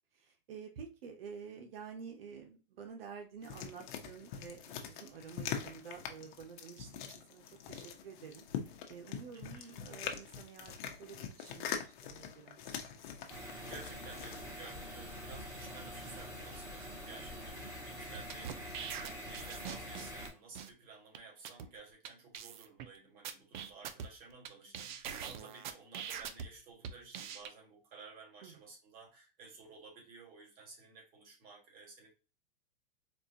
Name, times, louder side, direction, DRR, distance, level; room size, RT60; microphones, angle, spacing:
voice 1, 0.1-12.6 28.4-28.6, right 6 dB, 80° right, 3 dB, 0.9 m, -50 dB
sound 1, 3.4-14.5, left 8 dB, 55° left, 0.9 m, -43 dB
voice 2, 9.3-9.8 13.4-32.1, right 4 dB, 30° right, -1 dB, 1.8 m, -54 dB
sound 2, 13.3-20.3, equal, 10° right, 1.3 m, -45 dB
sound 3, 18.1-20.3 20.5-20.7 21.1-21.2 21.4-21.7 22.0-22.1 22.3-22.9 23.2-24.5 24.7-26.5 26.8-27.5, right 8 dB, 55° right, 0.6 m, -42 dB
4.3 x 2.5 x 2.7 m, 0.32 s
supercardioid pair, 150°, 29 cm